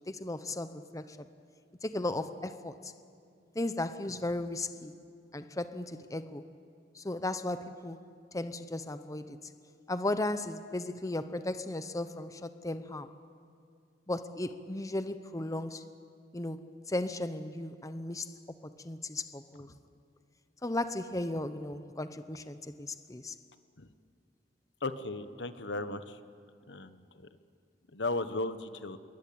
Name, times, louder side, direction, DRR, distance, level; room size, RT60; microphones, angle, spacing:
voice 1, 0.1-1.3 1.8-2.9 3.5-4.9 5.3-6.4 6.9-8.0 8.3-9.4 9.9-13.1 14.1-15.8 16.3-18.3 18.6-19.7 20.6-23.3, left 2 dB, 20° left, 10 dB, 0.8 m, -36 dB
voice 2, 24.8-26.2 26.7-27.0 27.9-29.0, left 2 dB, 75° left, 11 dB, 1.2 m, -35 dB
28.0 x 22.5 x 8.7 m, 2.3 s
head